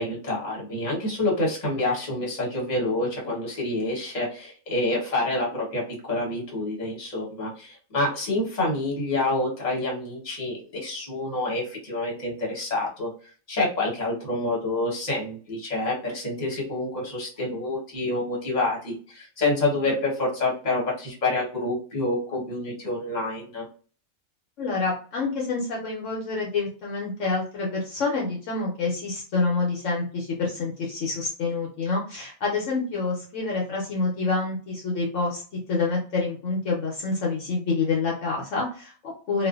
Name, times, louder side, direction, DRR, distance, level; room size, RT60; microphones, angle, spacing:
voice 1, 0.0-13.1 13.5-23.6, left 2 dB, 35° left, -3 dB, 1.0 m, -27 dB
voice 2, 24.6-35.4 35.7-39.5, left 3 dB, 70° left, -2 dB, 1.0 m, -27 dB
2.5 x 2.5 x 2.3 m, 0.40 s
omnidirectional pair, 1.4 m